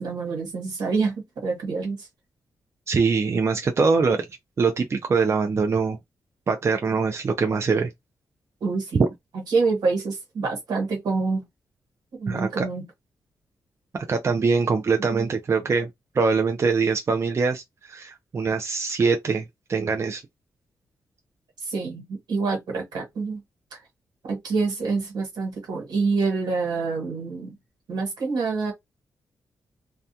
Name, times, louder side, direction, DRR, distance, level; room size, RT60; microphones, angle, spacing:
voice 1, 0.0-2.1 8.6-9.1 9.5-11.4 12.1-12.8 15.1-15.3 21.7-23.4 23.7-23.8 24.2-27.5 27.9-28.7, right 4 dB, 80° right, 1.4 m, -26 dB
voice 2, 2.9-4.2 4.6-6.0 6.5-7.9 9.0-9.1 12.3-12.7 13.9-15.9 16.1-20.2, right 4 dB, 40° right, 0.5 m, -23 dB
2.3 x 2.2 x 2.7 m
cardioid pair, 85°, 7 cm